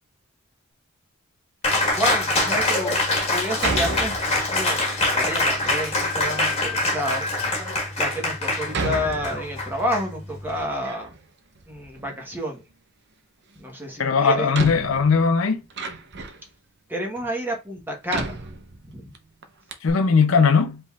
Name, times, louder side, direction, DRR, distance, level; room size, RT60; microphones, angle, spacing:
Cheering, 1.6-10.6, left 2 dB, 30° left, 1.5 m, -24 dB
voice 1, 2.0-3.0 3.3-7.2 8.0-11.1 11.7-12.6 13.5-14.5 16.9-18.4 18.8-19.1, equal, 10° right, 1.1 m, -30 dB
Door, 2.2-2.7 3.6-4.6 5.3-5.9 6.7-6.8 7.4-7.5 8.7-9.9 10.2-11.3 11.6-12.4 13.7-13.8 14.5-16.5 17.2-17.3 18.1-19.2 19.4-19.5 19.7-19.9, right 3 dB, 55° right, 0.7 m, -32 dB
voice 2, 14.0-15.6 19.8-20.8, left 5 dB, 75° left, 0.6 m, -19 dB
5.1 x 3.5 x 2.4 m
head